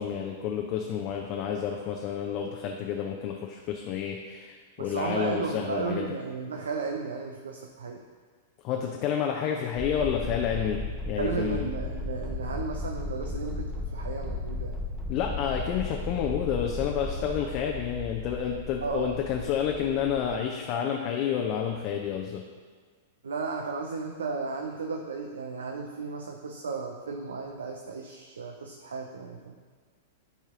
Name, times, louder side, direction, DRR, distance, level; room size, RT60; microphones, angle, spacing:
voice 1, 0.0-6.1 8.6-11.7 15.1-22.4, left 8 dB, 45° left, 2 dB, 0.6 m, -30 dB
voice 2, 4.8-8.0 11.2-14.8 17.0-17.3 18.8-19.2 23.2-29.6, right 4 dB, 75° right, 3 dB, 0.6 m, -34 dB
sound 1, 9.8-20.4, left 2 dB, ahead, 0.9 m, -35 dB
11.0 x 4.3 x 3.7 m, 1.6 s
figure-of-eight pair, 100°, 0 cm